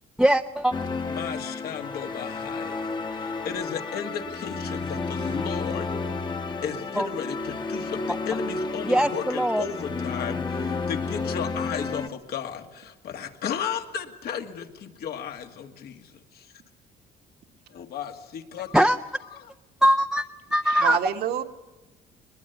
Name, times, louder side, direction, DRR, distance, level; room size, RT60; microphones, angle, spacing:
voice 1, 0.2-0.7 7.0-7.1 8.8-9.6 18.7-19.0 19.8-20.3 20.5-21.0, equal, 5° right, 5 dB, 0.7 m, -21 dB
sound 1, 0.7-12.1, left 3 dB, 25° left, 1.3 m, -31 dB
voice 2, 1.0-5.9 6.6-16.5 17.7-18.9 19.3-19.5, left 8 dB, 65° left, 5 dB, 2.2 m, -35 dB
voice 3, 4.7-5.1 20.6-21.4, right 11 dB, 70° right, 5 dB, 1.8 m, -29 dB
21.5 x 21.5 x 8.2 m, 1.1 s
cardioid pair, 110°, 17 cm